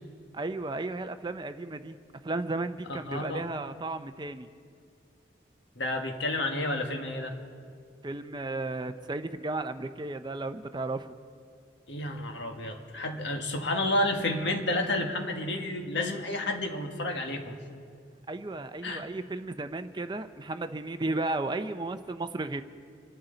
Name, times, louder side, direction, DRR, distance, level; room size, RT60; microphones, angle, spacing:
voice 1, 0.3-2.0 2.2-4.5 8.0-11.2 18.3-22.6, right 2 dB, 25° right, 10 dB, 0.5 m, -34 dB
voice 2, 2.9-3.4 5.8-7.3 11.9-17.5 18.8-19.0, left 1 dB, 70° left, 3 dB, 1.6 m, -30 dB
27.0 x 12.5 x 3.9 m, 2.3 s
head